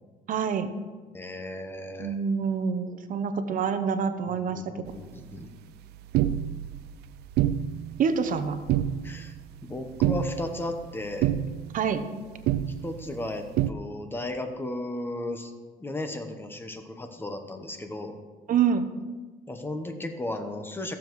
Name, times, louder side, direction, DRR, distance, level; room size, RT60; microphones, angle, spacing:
voice 1, 0.3-0.7 2.0-4.6 8.0-8.6 11.7-12.0 18.5-18.9, right 6 dB, 50° right, 10 dB, 0.8 m, -26 dB
voice 2, 1.1-2.2 4.3-5.5 9.0-9.4 9.6-11.3 12.7-15.5 15.8-18.1 19.5-21.0, left 1 dB, 15° left, 6 dB, 1.0 m, -35 dB
sound 1, 4.9-13.7, right 11 dB, 75° right, 0.4 m, -30 dB
14.0 x 7.1 x 3.1 m, 1.4 s
cardioid pair, 110°, 17 cm